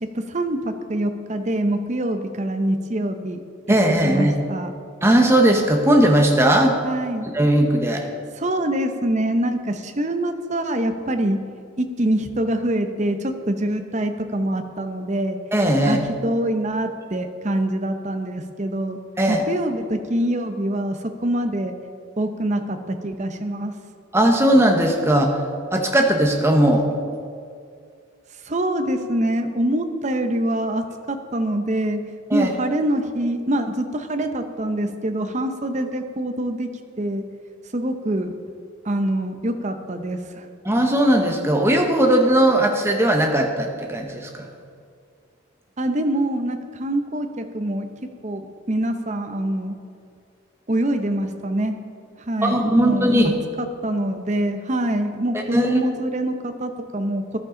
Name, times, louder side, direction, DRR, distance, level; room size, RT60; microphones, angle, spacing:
voice 1, 0.0-3.4 3.9-4.7 6.8-7.3 8.4-11.4 11.8-15.4 15.8-19.0 19.3-21.7 22.2-23.7 28.4-32.0 32.3-36.7 37.0-37.2 37.7-38.3 38.8-40.5 45.8-47.9 48.2-49.8 50.7-51.8 52.3-53.3 53.6-57.4, right 1 dB, 35° right, 7 dB, 0.7 m, -25 dB
voice 2, 3.7-4.3 5.0-6.8 7.3-8.1 15.5-16.0 19.2-19.5 24.1-25.4 25.7-26.9 32.3-32.5 40.6-44.5 52.4-53.3 55.3-55.7, right 1 dB, 10° right, 2 dB, 1.0 m, -18 dB
14.0 x 11.5 x 3.8 m, 2.3 s
head